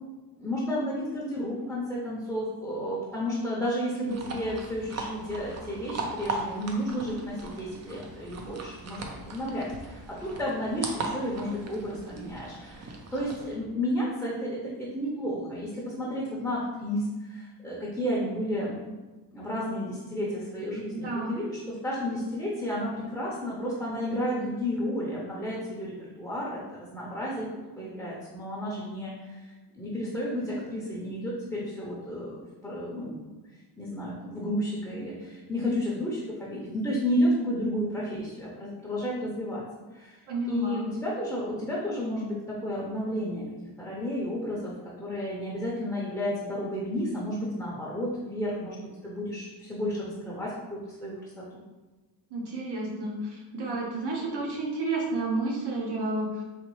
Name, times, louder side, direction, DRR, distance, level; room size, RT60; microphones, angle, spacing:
voice 1, 0.4-18.8 19.3-26.6 26.9-27.5 27.8-33.3 33.8-39.6 39.9-40.2 40.5-43.4 43.8-44.7 45.0-48.8 49.0-51.6, equal, 5° left, -6 dB, 0.6 m, -32 dB
sound 1, 4.1-13.6, right 3 dB, 40° right, 0.5 m, -38 dB
voice 2, 20.9-21.3 40.3-40.9 52.3-56.4, right 2 dB, 75° right, -2 dB, 1.1 m, -31 dB
4.1 x 3.0 x 3.1 m, 1.2 s
wide cardioid pair, 155°, 40 cm